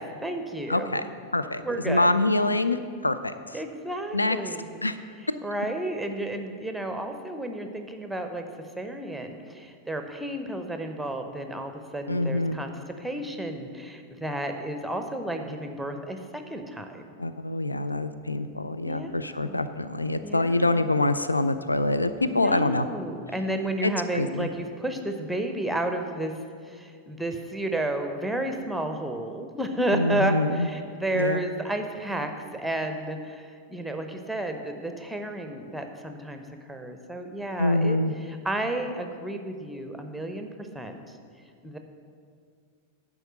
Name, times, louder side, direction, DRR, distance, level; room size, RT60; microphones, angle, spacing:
voice 1, 0.0-2.1 3.5-4.9 5.4-8.4 8.8-12.7 13.0-17.1 18.8-19.6 20.2-20.9 22.3-26.3 26.6-41.2 41.6-41.8, right 1 dB, ahead, 5 dB, 0.8 m, -32 dB
voice 2, 0.7-1.0 1.3-3.3 4.1-4.4 4.8-5.0 12.1-12.6 17.2-22.8 23.8-24.5 29.9-30.7 31.1-31.4 37.6-38.1, left 2 dB, 80° left, 11 dB, 0.3 m, -25 dB
11.0 x 4.8 x 6.4 m, 2.2 s
figure-of-eight pair, 90°, 0 cm